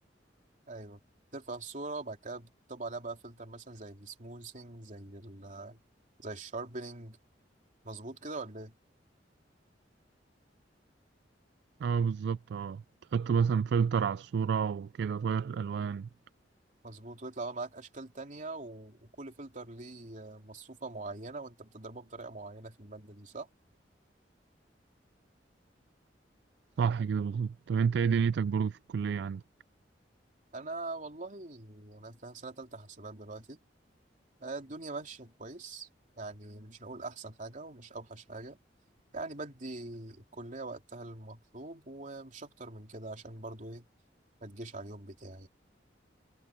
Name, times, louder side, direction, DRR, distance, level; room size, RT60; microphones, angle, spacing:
voice 1, 0.7-1.0 1.3-5.8 6.2-7.2 7.8-8.7 16.8-23.5 30.5-33.6 34.4-35.9 36.2-38.6 39.1-43.9 44.4-45.5, right 3 dB, 45° right, 3.2 m, -43 dB
voice 2, 11.8-12.8 13.1-16.1 26.8-29.4, right 6 dB, 65° right, 0.3 m, -29 dB
head